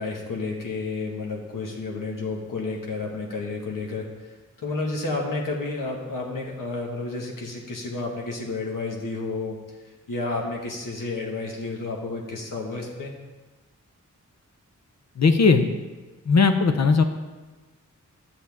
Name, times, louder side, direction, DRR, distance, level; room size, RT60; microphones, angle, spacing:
voice 1, 0.0-4.0 4.6-9.6 10.1-13.1, left 3 dB, 85° left, -1 dB, 1.7 m, -31 dB
voice 2, 15.2-15.7 16.3-17.0, left 4 dB, 55° left, 7 dB, 0.7 m, -18 dB
12.0 x 7.1 x 3.6 m, 1.3 s
wide cardioid pair, 155°, 32 cm